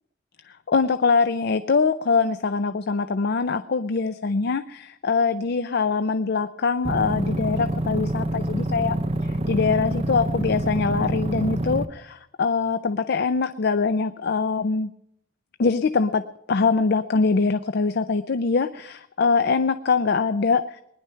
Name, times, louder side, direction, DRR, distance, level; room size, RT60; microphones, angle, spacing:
voice 1, 0.5-14.9 15.6-16.2 16.5-20.8, left 4 dB, 55° left, 11 dB, 0.5 m, -23 dB
sound 1, 6.8-11.8, right 1 dB, 30° right, 0.6 m, -26 dB
20.5 x 10.5 x 5.7 m, 0.78 s
head